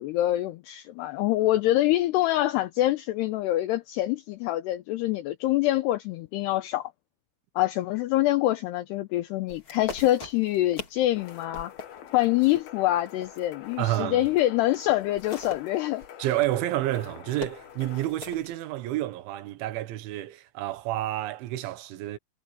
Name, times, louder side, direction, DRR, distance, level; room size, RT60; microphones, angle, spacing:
voice 1, 0.0-6.9 7.6-11.7 12.1-16.0, left 15 dB, 80° left, 2.5 m, -25 dB
sound 1, 9.5-14.4 14.7-18.5, left 5 dB, 35° left, 2.5 m, -43 dB
sound 2, 10.2-10.8 11.1-12.4 13.0-13.1 13.3-15.6 16.4-16.7, left 1 dB, 5° left, 7.0 m, -55 dB
sound 3, 11.2-18.0, left 10 dB, 60° left, 3.2 m, -47 dB
voice 2, 13.8-14.3 16.2-22.2, right 14 dB, 80° right, 3.6 m, -29 dB
omnidirectional pair, 5.4 m